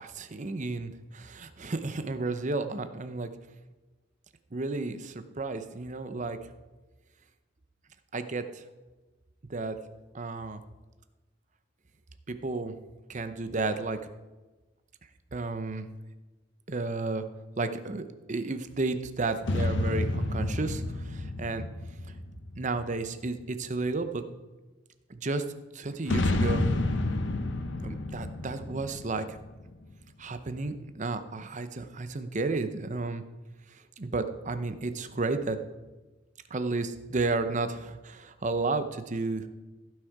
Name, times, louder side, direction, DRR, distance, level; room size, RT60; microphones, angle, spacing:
voice 1, 0.0-3.3 4.5-6.4 8.1-8.6 9.5-9.8 10.1-10.6 12.3-12.8 13.1-14.0 15.3-15.9 16.7-17.2 17.6-21.7 22.6-24.2 25.1-25.5 25.7-26.7 27.8-29.4 30.2-33.2 33.7-35.6 36.5-39.5, right 3 dB, 40° right, 10 dB, 0.8 m, -32 dB
sound 1, 19.4-23.1 26.0-29.8, left 2 dB, 70° left, 0.8 m, -30 dB
15.5 x 6.4 x 4.7 m, 1.2 s
head